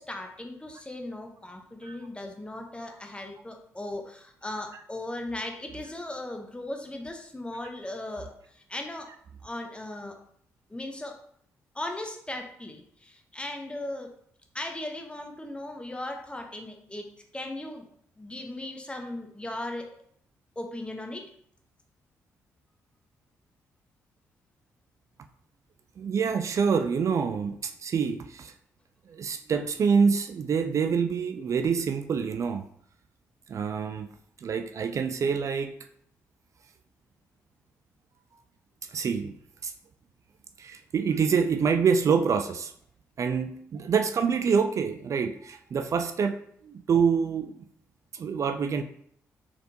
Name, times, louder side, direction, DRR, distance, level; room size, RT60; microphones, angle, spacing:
voice 1, 0.0-9.1 9.4-10.2 10.7-11.2 11.7-14.2 14.5-17.1 17.3-17.9 18.2-20.0 20.6-21.3, left 1 dB, 15° left, 3 dB, 0.8 m, -37 dB
voice 2, 26.0-28.5 29.1-32.6 33.5-34.1 34.4-35.7 38.9-39.4 39.6-39.7 40.6-42.7 43.2-47.6 48.1-48.8, right 6 dB, 50° right, 6 dB, 0.3 m, -26 dB
4.0 x 3.4 x 2.8 m, 0.66 s
supercardioid pair, 60°, 7 cm